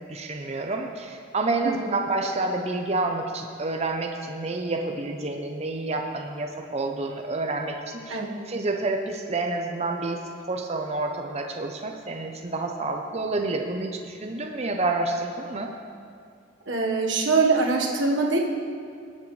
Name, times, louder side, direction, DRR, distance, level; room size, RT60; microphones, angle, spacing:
voice 1, 0.1-8.2 8.5-15.7, right 2 dB, 35° right, 3 dB, 0.6 m, -29 dB
voice 2, 1.6-2.0 8.1-8.4 16.6-18.4, right 3 dB, 70° right, -1 dB, 1.4 m, -23 dB
19.0 x 7.5 x 3.2 m, 2.3 s
head